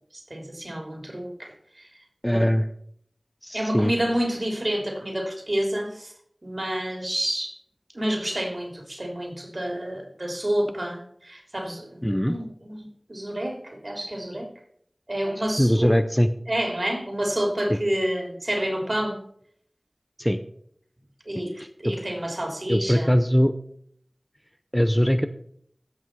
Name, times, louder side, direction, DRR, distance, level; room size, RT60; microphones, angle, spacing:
voice 1, 0.1-1.9 2.3-2.4 3.5-6.1 6.4-7.6 7.9-14.5 15.1-15.9 16.5-19.2 21.2-21.5 21.8-23.1, right 1 dB, 55° right, 1 dB, 3.3 m, -29 dB
voice 2, 2.2-2.6 3.4-3.9 12.0-12.4 15.6-16.3 17.7-17.8 20.2-20.4 21.6-21.9 22.7-23.5 24.7-25.3, equal, 10° left, 9 dB, 0.6 m, -21 dB
15.5 x 5.9 x 4.7 m, 0.65 s
wide cardioid pair, 40°, 0 cm